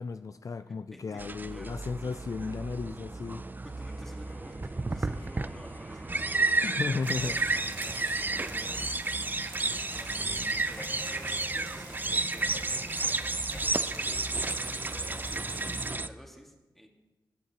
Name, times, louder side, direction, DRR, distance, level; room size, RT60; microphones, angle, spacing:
voice 1, 0.0-3.4 6.6-7.4, left 4 dB, 50° left, 10 dB, 0.4 m, -34 dB
voice 2, 0.7-1.8 3.6-9.2 9.9-13.2 13.6-16.9, equal, 5° left, 2 dB, 1.9 m, -51 dB
sound 1, 1.2-16.1, right 3 dB, 25° right, 0.4 m, -32 dB
sound 2, 3.9-13.6, left 1 dB, 25° left, 0.8 m, -52 dB
sound 3, 7.0-15.9, right 3 dB, 90° right, 2.2 m, -46 dB
20.0 x 8.4 x 2.9 m, 1.1 s
cardioid pair, 60°, 8 cm